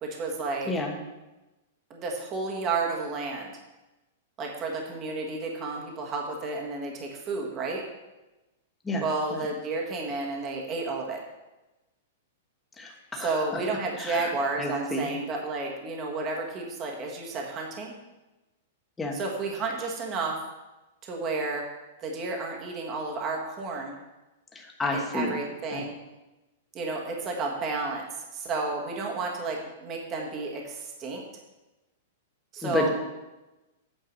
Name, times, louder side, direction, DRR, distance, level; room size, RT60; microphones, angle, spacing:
voice 1, 0.0-0.7 1.9-3.6 4.4-7.8 9.0-11.2 13.1-18.0 19.1-20.4 21.0-21.6 22.0-23.9 24.9-26.0 26.7-31.2 32.5-32.9, right 3 dB, 25° right, 0 dB, 1.5 m, -31 dB
voice 2, 0.7-1.0 8.8-9.0 9.3-9.5 12.8-13.3 14.0-14.3 14.6-15.1 19.0-19.2 24.5-25.4 25.7-25.8 32.6-32.9, left 2 dB, 10° left, 1 dB, 1.2 m, -30 dB
9.0 x 4.7 x 7.4 m, 1.0 s
supercardioid pair, 160°, 0 cm